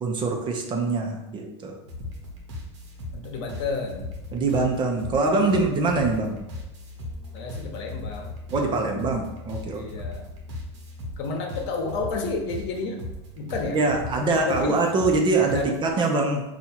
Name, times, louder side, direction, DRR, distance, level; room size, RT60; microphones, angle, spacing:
voice 1, 0.0-1.8 4.3-6.4 8.5-9.9 13.7-16.4, right 3 dB, 30° right, 2 dB, 0.9 m, -24 dB
sound 1, 1.9-15.9, left 2 dB, 80° right, 1.3 m, -38 dB
voice 2, 3.1-4.1 7.3-8.3 9.7-10.2 11.2-13.0 13.4-13.8 14.3-14.8 15.5-15.7, left 4 dB, 65° left, 2 dB, 1.0 m, -30 dB
4.5 x 2.7 x 4.3 m, 0.96 s
supercardioid pair, 110°, 15 cm